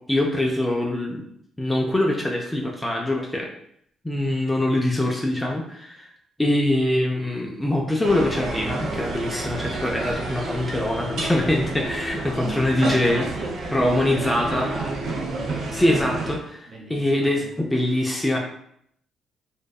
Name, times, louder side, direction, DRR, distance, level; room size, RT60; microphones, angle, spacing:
voice 1, 0.1-1.3 1.6-3.5 4.0-6.1 6.4-13.2 13.7-14.7 15.7-18.4, left 1 dB, 10° left, -1 dB, 0.4 m, -23 dB
sound 1, 8.0-16.4, right 3 dB, 70° right, 0.5 m, -30 dB
voice 2, 13.0-15.5 16.7-17.5, right 1 dB, 40° right, -2 dB, 0.7 m, -37 dB
2.6 x 2.1 x 2.2 m, 0.70 s
cardioid pair, 90°, 0 cm